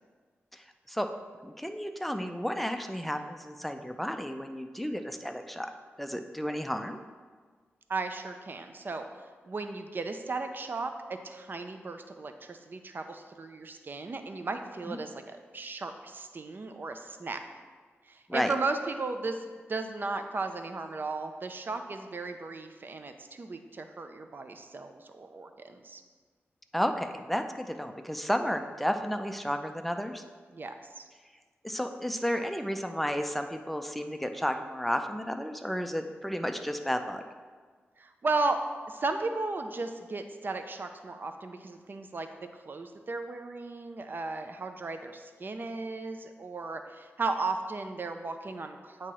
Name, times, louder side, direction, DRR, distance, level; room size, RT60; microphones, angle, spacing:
voice 1, 0.5-1.1 1.4-5.7 6.0-7.0 14.9-15.0 18.3-18.5 26.7-30.2 31.6-37.2, equal, 5° left, 6 dB, 0.5 m, -32 dB
voice 2, 7.9-10.9 11.2-17.4 18.1-19.4 19.7-26.0 30.5-31.0 38.0-38.6 38.9-42.3 42.5-49.1, right 3 dB, 45° right, 7 dB, 0.5 m, -35 dB
8.4 x 3.0 x 4.6 m, 1.5 s
wide cardioid pair, 75°, 5 cm